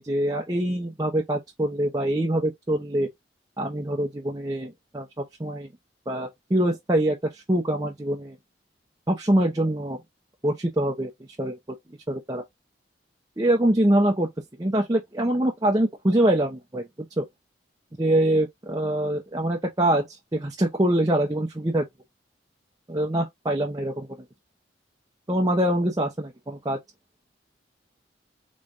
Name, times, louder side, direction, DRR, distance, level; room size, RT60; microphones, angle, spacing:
voice 1, 0.0-3.1 3.6-5.7 6.1-8.4 9.1-10.0 10.4-11.1 11.4-11.6 12.1-12.4 13.4-14.3 14.6-16.9 17.2-17.3 18.0-21.8 22.9-24.1 25.3-26.8, right 1 dB, 20° right, 0.7 m, -24 dB
5.0 x 3.1 x 2.6 m
head